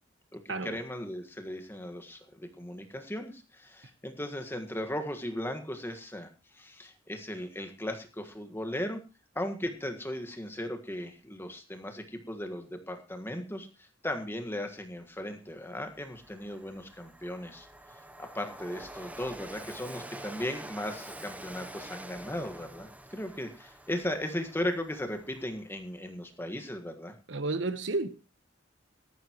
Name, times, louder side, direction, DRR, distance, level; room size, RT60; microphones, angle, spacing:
voice 1, 0.3-6.3 6.5-9.0 9.3-17.7 18.2-27.1, left 1 dB, 10° left, 1.6 m, -37 dB
Train, 15.0-15.1 15.5-25.9, right 1 dB, 10° right, 0.8 m, -47 dB
voice 2, 27.3-28.1, right 3 dB, 65° right, 1.1 m, -31 dB
18.0 x 14.0 x 3.1 m
head